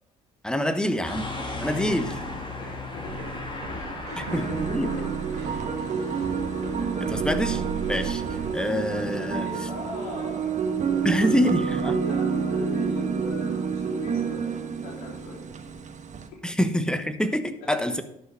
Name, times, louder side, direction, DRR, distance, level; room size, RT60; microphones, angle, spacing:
voice 1, 0.4-1.3 1.6-2.1 4.2-4.9 7.0-7.6 7.9-8.2 8.5-9.5 11.0-12.0 16.4-18.0, equal, 5° left, 10 dB, 1.1 m, -26 dB
sound 1, 1.0-14.7, left 2 dB, 30° left, 2.2 m, -40 dB
voice 2, 2.6-3.3 3.7-5.1 9.0-11.5 12.0-14.5 14.8-15.4 17.7-17.8, left 3 dB, 70° left, -8 dB, 3.9 m, -39 dB
sound 2, 3.0-8.5, right 4 dB, 70° right, 2.8 m, -37 dB
sound 3, 4.3-16.3, right 6 dB, 45° right, 1.3 m, -29 dB
11.5 x 5.7 x 5.0 m, 0.79 s
hypercardioid pair, 55°, 17 cm